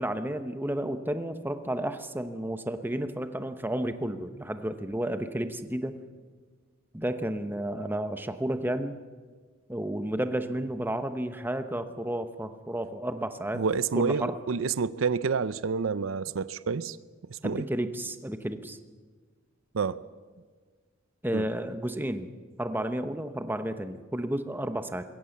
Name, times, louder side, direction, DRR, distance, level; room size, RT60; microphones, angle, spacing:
voice 1, 0.0-6.0 6.9-9.0 9.7-13.6 13.9-14.4 17.4-18.8 21.2-22.3 22.6-25.0, right 1 dB, 10° right, 1.0 m, -32 dB
voice 2, 13.5-17.0 17.3-17.6 19.7-20.0 21.3-21.4, right 5 dB, 85° right, 0.6 m, -28 dB
22.0 x 17.0 x 7.2 m
head